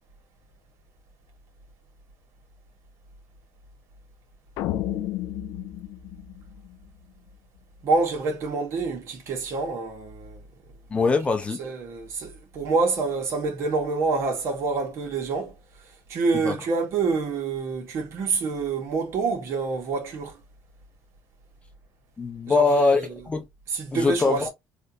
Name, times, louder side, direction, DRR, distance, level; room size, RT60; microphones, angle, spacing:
sound 1, 4.6-7.0, left 13 dB, 70° left, 0.4 m, -32 dB
voice 1, 7.8-10.4 11.6-15.5 16.1-20.4 22.5-23.0 23.7-24.5, right 4 dB, 55° right, 1.4 m, -27 dB
voice 2, 10.9-11.6 16.4-16.5 22.2-23.4 23.9-24.5, left 4 dB, 20° left, 0.6 m, -22 dB
3.3 x 2.6 x 2.8 m
cardioid pair, 110°, 6 cm